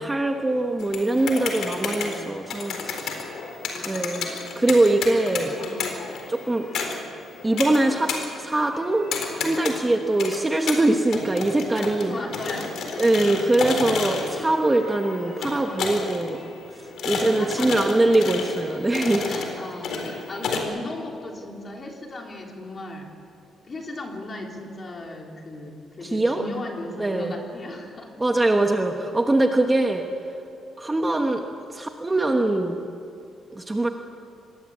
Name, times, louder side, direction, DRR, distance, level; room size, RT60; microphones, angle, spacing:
voice 1, 0.0-3.1 3.9-4.3 4.6-5.5 6.3-6.7 7.4-12.2 13.0-16.4 16.7-19.3 26.0-26.4 27.0-27.4 28.2-30.0 30.8-31.4 31.7-32.8 33.5-33.9, right 2 dB, 10° right, 3 dB, 1.1 m, -22 dB
sound 1, 0.8-20.6, left 4 dB, 60° left, 4.1 m, -32 dB
voice 2, 1.7-2.4 3.6-4.6 5.4-6.0 12.0-12.8 17.1-17.7 19.3-23.1 23.6-28.1, left 2 dB, 25° left, 1 dB, 3.6 m, -37 dB
26.5 x 21.5 x 8.6 m, 2.7 s
cardioid pair, 175°, 0 cm